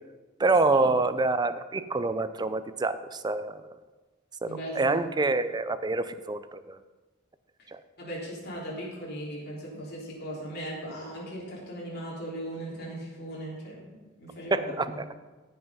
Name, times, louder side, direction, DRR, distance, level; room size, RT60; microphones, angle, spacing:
voice 1, 0.4-3.6 4.4-6.8 7.7-7.8 14.5-15.0, right 3 dB, 20° right, 12 dB, 0.5 m, -27 dB
voice 2, 4.5-5.0 8.0-15.0, right 1 dB, 50° left, -4 dB, 3.4 m, -38 dB
14.5 x 5.6 x 5.6 m, 1.3 s
head